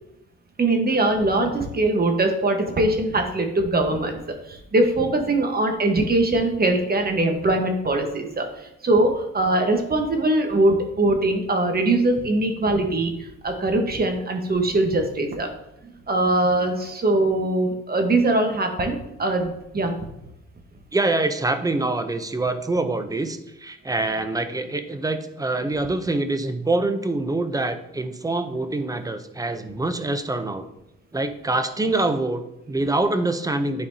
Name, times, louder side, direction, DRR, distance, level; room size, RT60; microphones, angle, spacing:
voice 1, 0.6-4.2 4.5-15.5 16.1-19.9, right 2 dB, 30° right, 4 dB, 1.2 m, -22 dB
voice 2, 20.9-30.6 31.1-33.9, right 2 dB, 10° right, 9 dB, 0.6 m, -25 dB
10.0 x 4.2 x 2.7 m, 0.85 s
cardioid pair, 90°, 30 cm